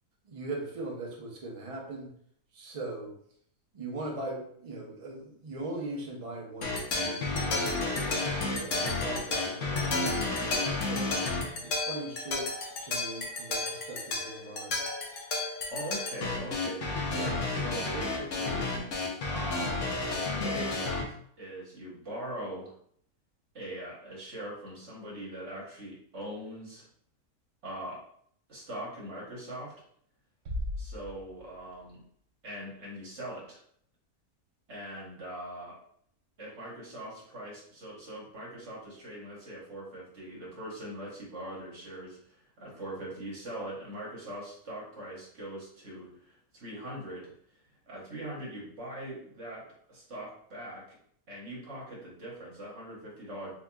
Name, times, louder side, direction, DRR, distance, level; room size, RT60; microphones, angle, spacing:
voice 1, 0.2-2.1 2.5-3.1 3.7-7.6 8.4-10.1 10.8-11.2 11.6-12.5 12.8-14.8, right 2 dB, 35° right, -1 dB, 0.5 m, -40 dB
sound 1, 6.6-21.0, left 3 dB, 60° left, 1.0 m, -31 dB
voice 2, 15.7-18.7 19.3-19.8 20.3-22.7 23.5-26.8 27.6-28.0 28.5-29.7 30.8-32.0 32.4-33.6 34.7-35.8 36.4-47.3 47.9-49.6 49.9-51.0 51.3-53.5, right 1 dB, 50° right, -5 dB, 1.4 m, -41 dB
Bass drum, 30.5-31.9, left 1 dB, 75° right, 1.0 m, -37 dB
4.2 x 2.8 x 2.3 m, 0.64 s
omnidirectional pair, 1.6 m